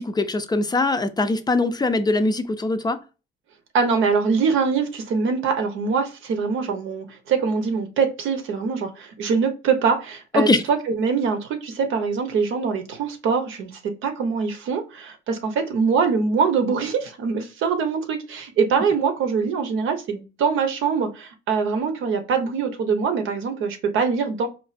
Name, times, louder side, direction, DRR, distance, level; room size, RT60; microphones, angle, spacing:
voice 1, 0.0-3.0 10.3-10.6, left 2 dB, 20° left, 0.4 m, -22 dB
voice 2, 3.7-24.5, right 5 dB, 85° right, 0.8 m, -23 dB
4.4 x 2.4 x 2.4 m
cardioid pair, 90°, 20 cm